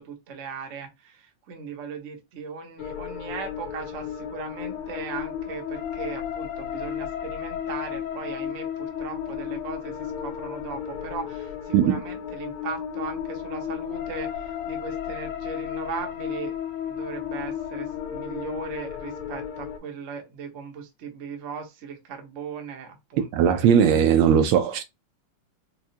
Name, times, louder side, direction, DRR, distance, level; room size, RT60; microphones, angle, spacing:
voice 1, 0.0-16.6 16.8-23.7, right 5 dB, 55° right, 0.9 m, -38 dB
sound 1, 2.8-19.8, left 9 dB, 75° left, 1.6 m, -33 dB
voice 2, 23.3-24.8, right 8 dB, 75° right, 1.3 m, -18 dB
4.7 x 2.3 x 2.7 m
omnidirectional pair, 2.4 m